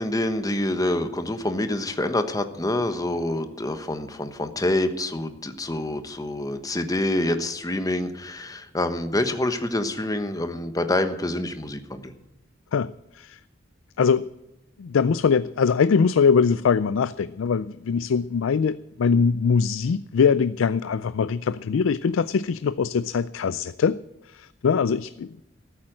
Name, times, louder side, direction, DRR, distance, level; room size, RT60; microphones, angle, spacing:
voice 1, 0.0-12.1, left 1 dB, 20° left, 9 dB, 1.1 m, -26 dB
voice 2, 12.7-13.4 14.0-14.3 14.8-24.0 24.3-25.4, left 6 dB, 85° left, 15 dB, 0.4 m, -22 dB
14.0 x 8.4 x 7.7 m, 0.94 s
head